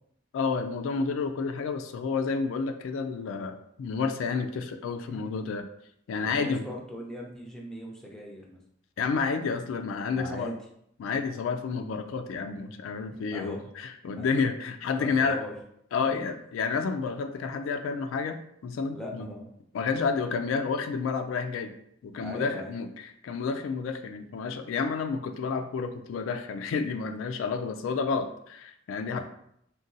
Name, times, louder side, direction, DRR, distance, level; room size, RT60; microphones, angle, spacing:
voice 1, 0.3-5.7 6.1-6.6 9.0-10.5 11.0-15.4 15.9-19.3 19.7-21.7 22.0-29.2, left 5 dB, 85° left, 7 dB, 0.3 m, -30 dB
voice 2, 5.0-5.4 6.2-8.6 10.1-10.6 13.3-13.6 14.1-14.3 15.0-15.5 16.0-16.2 18.9-19.5 22.2-22.7 29.1-29.2, left 1 dB, 5° left, -1 dB, 0.5 m, -40 dB
3.8 x 2.2 x 2.6 m, 0.72 s
head